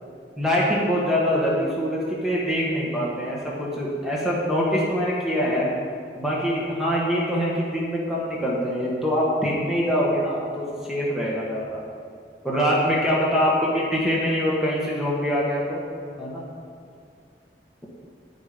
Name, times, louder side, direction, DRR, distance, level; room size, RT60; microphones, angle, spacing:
voice 1, 0.4-5.7 6.1-11.8 12.4-15.8 16.2-16.4, equal, 5° right, -5 dB, 1.5 m, -24 dB
9.2 x 9.1 x 5.2 m, 2.3 s
head